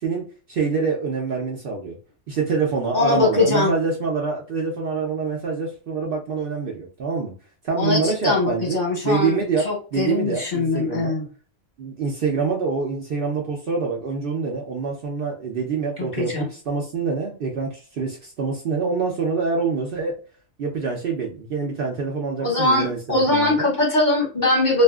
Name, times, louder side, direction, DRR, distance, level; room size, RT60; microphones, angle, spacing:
voice 1, 0.0-2.0 2.3-7.3 7.6-11.2 11.8-20.2 20.6-23.7, right 4 dB, 55° right, 0 dB, 0.7 m, -26 dB
voice 2, 2.9-3.7 7.8-9.4 9.6-11.2 16.0-16.5 22.4-24.8, left 2 dB, 40° left, -2 dB, 1.0 m, -21 dB
2.7 x 2.4 x 2.3 m, 0.37 s
omnidirectional pair, 1.3 m